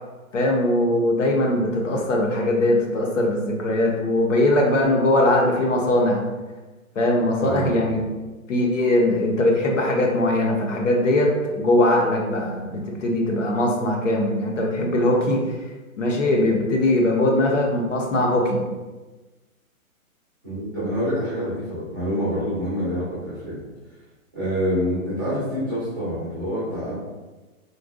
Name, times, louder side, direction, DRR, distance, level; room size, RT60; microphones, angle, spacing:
voice 1, 0.3-6.2 7.0-8.0 8.5-15.4 16.0-18.6, left 1 dB, 60° left, 0 dB, 0.7 m, -21 dB
voice 2, 7.4-8.1 20.4-23.6 24.3-26.9, equal, 15° right, -11 dB, 0.6 m, -27 dB
3.8 x 2.2 x 2.4 m, 1.2 s
hypercardioid pair, 175°, 42 cm